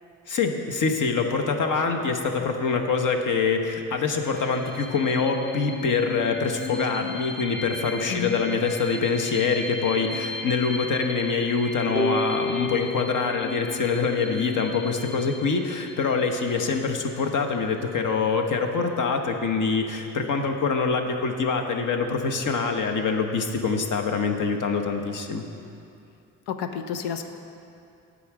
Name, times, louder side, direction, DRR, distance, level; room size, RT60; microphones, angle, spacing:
voice 1, 0.3-25.4, left 5 dB, 50° left, 4 dB, 1.0 m, -25 dB
sound 1, 4.2-17.5, left 3 dB, 25° left, 1.1 m, -37 dB
voice 2, 8.1-8.4 26.5-27.3, left 7 dB, 70° left, 6 dB, 0.7 m, -30 dB
sound 2, 12.0-14.8, equal, 10° left, 0.6 m, -31 dB
8.4 x 5.0 x 7.3 m, 2.6 s
hypercardioid pair, 55°, 41 cm